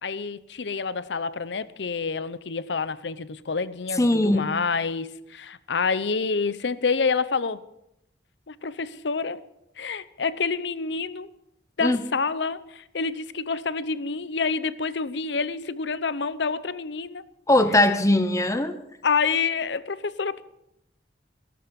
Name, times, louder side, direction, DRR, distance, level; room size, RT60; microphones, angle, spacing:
voice 1, 0.0-7.6 8.5-9.4 9.8-11.3 11.8-17.2 19.0-20.4, left 5 dB, 70° left, 0.7 m, -28 dB
voice 2, 4.0-4.5 11.8-12.0 17.5-18.8, left 1 dB, 15° left, 0.8 m, -20 dB
17.5 x 13.5 x 5.3 m
head